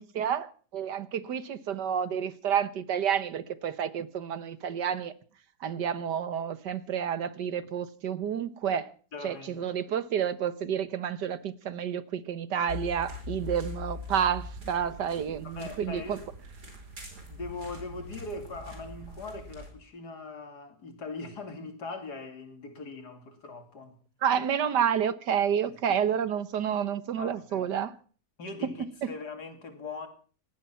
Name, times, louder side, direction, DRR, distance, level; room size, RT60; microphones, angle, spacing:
voice 1, 0.0-5.1 5.6-8.9 9.2-16.2 24.2-27.9 29.0-29.1, right 8 dB, 90° right, 1.9 m, -30 dB
voice 2, 9.1-9.7 15.4-16.3 17.3-24.0 24.6-24.7 25.6-26.0 27.2-27.7 28.4-30.1, left 3 dB, 70° left, 3.1 m, -41 dB
sound 1, 12.7-19.7, left 2 dB, 70° right, 5.1 m, -42 dB
18.5 x 13.0 x 5.7 m
omnidirectional pair, 1.8 m